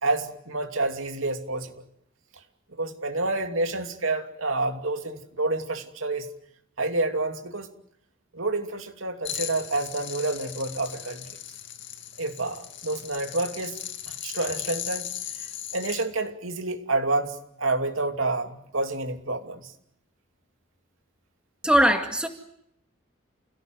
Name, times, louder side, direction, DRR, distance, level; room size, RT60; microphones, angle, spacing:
voice 1, 0.0-1.7 2.8-6.3 6.8-7.7 8.3-11.3 12.2-13.7 14.1-15.1 15.7-19.7, right 2 dB, 85° right, 5 dB, 2.9 m, -28 dB
sound 1, 9.3-16.1, left 10 dB, 60° left, 2.5 m, -37 dB
voice 2, 21.6-22.3, equal, 5° right, 5 dB, 2.2 m, -20 dB
30.0 x 17.5 x 9.4 m, 0.73 s
head